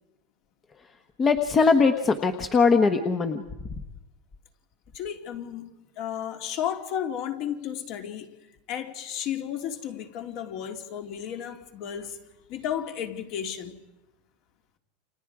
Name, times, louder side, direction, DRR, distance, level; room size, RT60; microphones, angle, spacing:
voice 1, 1.2-3.4, left 4 dB, 20° left, 1.2 m, -21 dB
voice 2, 4.9-8.3 8.7-12.2 12.5-13.8, left 9 dB, 45° left, 2.8 m, -33 dB
29.5 x 27.5 x 4.9 m
supercardioid pair, 150°, 0 cm